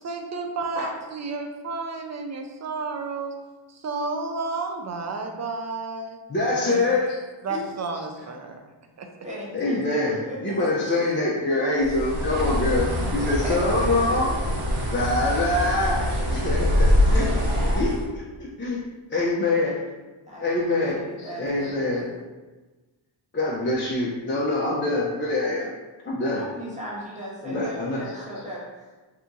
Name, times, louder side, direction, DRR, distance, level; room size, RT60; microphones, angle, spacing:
voice 1, 0.0-3.3 3.7-6.2 6.7-6.9 7.4-8.7 9.0-9.1 10.6-10.9, right 3 dB, 35° right, 4 dB, 0.4 m, -31 dB
voice 2, 6.3-7.1 9.5-14.3 14.9-18.2 18.6-18.8 19.1-19.8 20.4-22.0 23.3-25.7 26.0-26.4 27.4-28.2, left 2 dB, 25° left, -5 dB, 0.5 m, -25 dB
voice 3, 9.2-10.6 10.9-11.0 11.6-12.1 12.6-12.7 13.2-14.1 20.3-22.2 26.3-28.9, equal, 15° right, -6 dB, 1.1 m, -37 dB
Bird, 11.8-18.1, equal, 85° right, 1.0 m, -24 dB
2.8 x 2.5 x 3.6 m, 1.2 s
wide cardioid pair, 90°, 50 cm